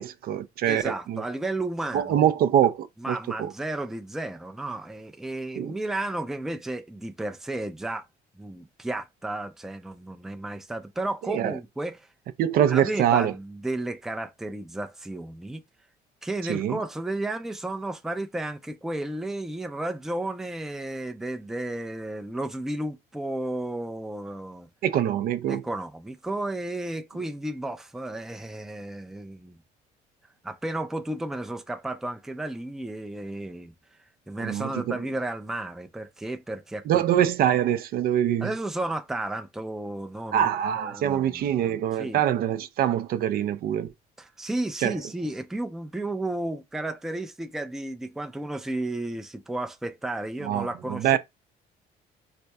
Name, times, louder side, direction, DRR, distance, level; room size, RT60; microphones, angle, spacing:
voice 1, 0.0-1.2 1.9-3.5 5.6-5.7 11.3-11.6 12.4-13.3 16.5-16.8 24.8-25.6 34.4-34.9 36.9-38.5 40.3-43.9 44.8-44.9 50.4-51.2, right 10 dB, 65° right, 0.4 m, -24 dB
voice 2, 0.7-2.3 3.0-8.1 8.4-12.1 12.7-15.6 16.2-24.7 25.5-29.6 30.4-33.7 34.3-37.0 38.4-40.5 40.8-42.2 44.2-51.2, right 2 dB, ahead, 0.4 m, -33 dB
4.2 x 2.6 x 2.2 m
cardioid pair, 110°, 17 cm